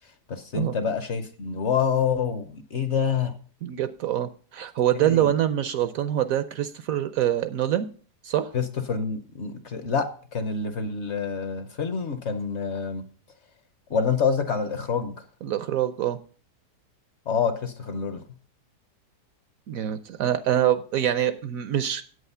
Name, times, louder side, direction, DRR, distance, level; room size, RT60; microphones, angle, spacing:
voice 1, 0.3-3.3 4.9-5.3 8.5-10.1 10.3-13.0 13.9-15.1 17.3-18.2, left 6 dB, 50° left, 9 dB, 0.9 m, -27 dB
voice 2, 3.6-7.9 8.2-8.5 15.4-16.2 19.7-22.0, right 11 dB, 70° right, 13 dB, 0.9 m, -25 dB
8.4 x 8.1 x 5.5 m, 0.41 s
omnidirectional pair, 1.8 m